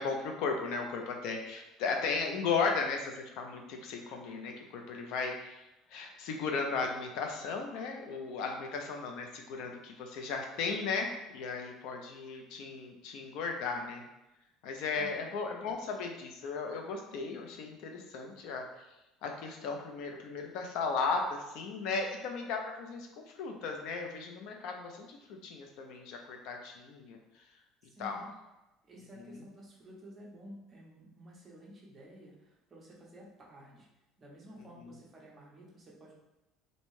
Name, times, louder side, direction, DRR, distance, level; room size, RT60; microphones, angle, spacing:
voice 1, 0.0-5.6 5.9-14.0 14.6-18.8 19.2-23.1 23.4-27.2 28.0-28.2 29.2-29.4 34.8-34.9, left 4 dB, 60° left, 3 dB, 0.4 m, -36 dB
voice 2, 27.9-28.3 28.8-33.9 34.2-36.1, equal, 20° right, -4 dB, 0.6 m, -52 dB
2.6 x 2.1 x 3.1 m, 0.97 s
cardioid pair, 175°, 0 cm